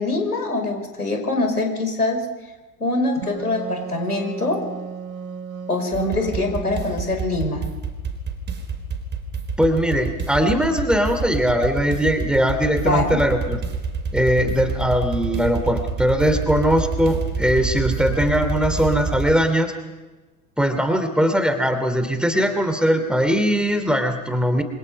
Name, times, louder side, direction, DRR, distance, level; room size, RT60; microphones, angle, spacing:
voice 1, 0.0-2.2 2.8-4.6 5.7-7.6 12.8-13.2, left 2 dB, 85° left, 4 dB, 5.4 m, -23 dB
Wind instrument woodwind instrument, 3.2-7.6, right 5 dB, 65° right, 1.9 m, -34 dB
sound 1, 5.9-19.3, right 4 dB, 25° right, 4.3 m, -28 dB
voice 2, 9.6-13.6 14.1-19.7 20.6-24.6, equal, ahead, 8 dB, 2.9 m, -20 dB
27.5 x 25.5 x 5.5 m, 1.2 s
figure-of-eight pair, 80°, 44 cm